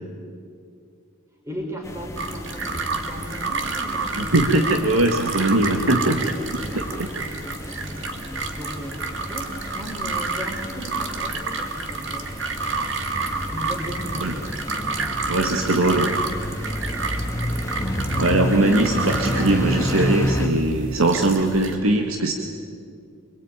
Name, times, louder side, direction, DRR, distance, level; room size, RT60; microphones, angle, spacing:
voice 1, 1.3-4.4 6.1-12.6 13.5-14.4, equal, 15° right, -1 dB, 4.0 m, -37 dB
sound 1, 1.8-20.5, equal, 15° left, 1.8 m, -31 dB
sound 2, 2.2-21.7, right 4 dB, 60° right, 2.3 m, -30 dB
voice 2, 4.2-6.4 14.2-14.3 15.3-16.2 18.2-22.3, right 2 dB, 80° right, 3 dB, 1.8 m, -20 dB
25.5 x 22.5 x 9.0 m, 2.3 s
head